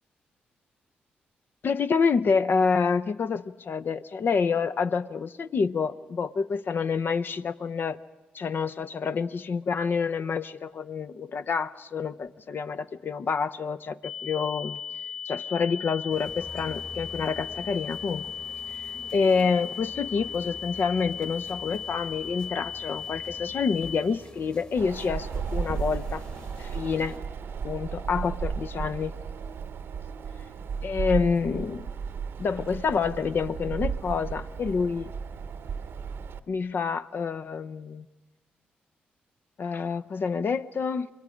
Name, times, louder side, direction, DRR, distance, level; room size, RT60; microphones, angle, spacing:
voice 1, 1.6-8.0 8.3-14.8 15.2-18.3 18.7-18.8 19.1-26.2 26.6-27.2 27.6-29.1 30.8-31.9 32.4-35.1 36.5-38.1 39.6-41.1, left 5 dB, 55° left, 11 dB, 0.7 m, -28 dB
sound 1, 14.0-24.0, left 8 dB, 75° left, 4.1 m, -37 dB
sound 2, 16.1-27.2, left 2 dB, 30° left, 2.0 m, -47 dB
Wind, 24.8-36.4, right 6 dB, 70° right, 0.9 m, -34 dB
27.5 x 22.0 x 5.1 m, 1.2 s
supercardioid pair, 45°, 4 cm